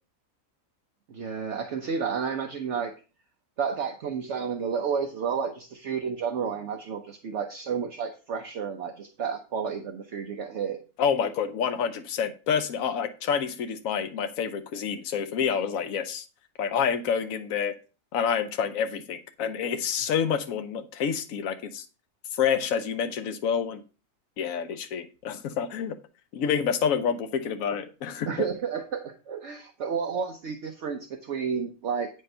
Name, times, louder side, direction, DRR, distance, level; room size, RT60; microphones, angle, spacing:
voice 1, 1.1-2.9 3.6-10.8 28.3-32.2, right 6 dB, 60° right, 5 dB, 1.1 m, -31 dB
voice 2, 11.0-16.2 16.6-17.7 18.1-21.9 22.3-23.8 24.4-26.0 26.3-28.3, left 7 dB, 80° left, 7 dB, 1.2 m, -28 dB
8.9 x 5.2 x 5.4 m, 0.33 s
omnidirectional pair, 1.4 m